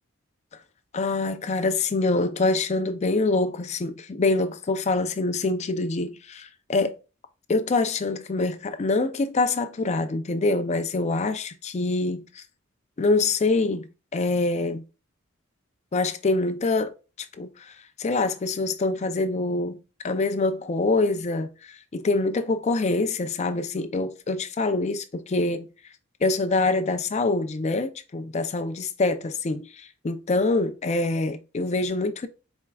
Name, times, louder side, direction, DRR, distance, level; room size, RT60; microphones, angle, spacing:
voice 1, 0.9-6.9 7.5-12.4 13.0-13.9 14.1-14.8 15.9-16.9 17.4-19.8 20.0-25.7 26.2-32.3, left 3 dB, 35° left, 0.4 m, -25 dB
4.4 x 3.4 x 2.3 m
head